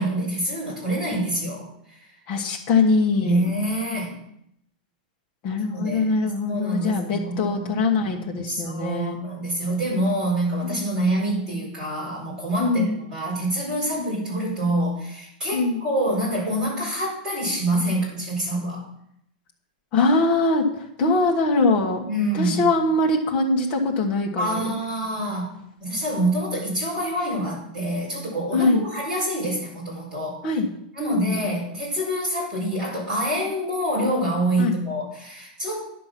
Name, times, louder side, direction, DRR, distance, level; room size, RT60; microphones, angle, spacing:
voice 1, 0.0-2.1 3.2-4.1 5.7-7.8 8.5-18.8 22.0-22.6 24.4-25.5 25.8-30.4 30.9-35.8, right 1 dB, 15° right, -7 dB, 4.8 m, -26 dB
voice 2, 2.3-3.4 5.4-9.2 10.7-10.8 12.6-13.0 14.0-14.1 15.5-15.8 19.9-22.0 22.3-24.7 28.5-28.8 30.4-30.7 31.0-31.4 34.6-34.8, left 3 dB, 25° left, -1 dB, 1.3 m, -22 dB
10.5 x 7.5 x 6.0 m, 0.75 s
supercardioid pair, 180°, 5 cm